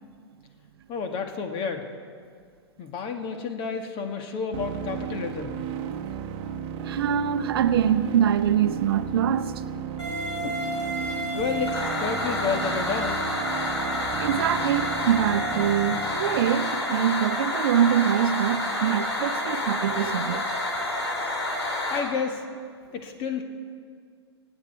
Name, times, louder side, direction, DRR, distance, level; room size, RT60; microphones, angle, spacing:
voice 1, 0.9-1.9 2.8-5.6 10.4-10.7 11.3-13.2 21.9-22.4 22.9-23.4, left 5 dB, 35° left, 1.8 m, -30 dB
sound 1, 4.5-16.5, right 7 dB, 40° right, 1.0 m, -34 dB
voice 2, 6.8-9.5 14.2-20.5, right 9 dB, 60° right, 0.7 m, -24 dB
sound 2, 10.0-22.0, left 1 dB, 80° left, 4.0 m, -29 dB
26.0 x 8.9 x 4.6 m
figure-of-eight pair, 105°, 14 cm